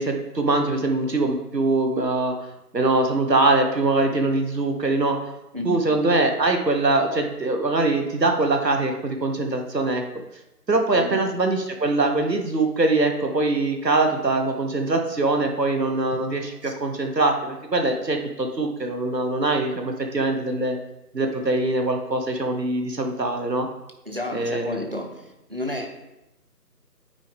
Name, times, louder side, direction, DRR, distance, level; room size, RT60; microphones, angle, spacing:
voice 1, 0.0-2.3 2.7-5.2 5.6-10.0 10.7-20.8 21.1-23.7 24.3-24.8, right 2 dB, 80° right, 4 dB, 1.2 m, -23 dB
voice 2, 10.9-11.3 16.6-16.7 24.1-25.9, left 1 dB, 35° right, 3 dB, 0.7 m, -31 dB
9.1 x 4.3 x 3.3 m, 0.91 s
figure-of-eight pair, 160°, 49 cm